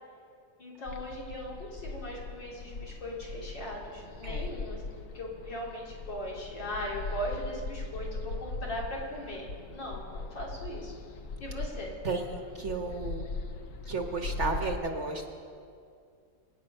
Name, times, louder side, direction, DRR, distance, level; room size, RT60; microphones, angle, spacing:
voice 1, 0.6-4.8 5.1-10.9 11.4-11.9, equal, 80° left, -4 dB, 3.8 m, -39 dB
sound 1, 0.9-14.8, left 3 dB, 60° left, 1.0 m, -40 dB
voice 2, 12.0-13.2 13.8-15.3, right 3 dB, 45° right, 4 dB, 1.2 m, -33 dB
25.0 x 9.0 x 5.5 m, 2.4 s
omnidirectional pair, 2.0 m